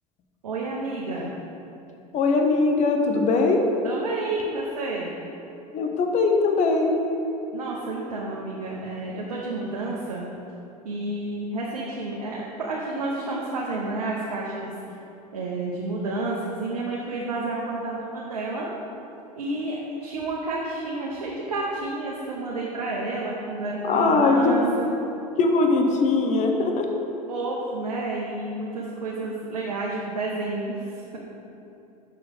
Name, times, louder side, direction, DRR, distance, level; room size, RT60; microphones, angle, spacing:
voice 1, 0.4-1.3 3.8-5.1 7.5-10.3 10.8-14.7 15.3-18.7 19.4-24.9 27.3-31.2, right 2 dB, 85° right, -4 dB, 0.8 m, -30 dB
voice 2, 2.1-3.6 5.7-6.9 23.8-24.6 25.4-26.9, left 3 dB, 40° left, 3 dB, 0.8 m, -21 dB
6.2 x 4.7 x 5.2 m, 2.8 s
hypercardioid pair, 85°, 19 cm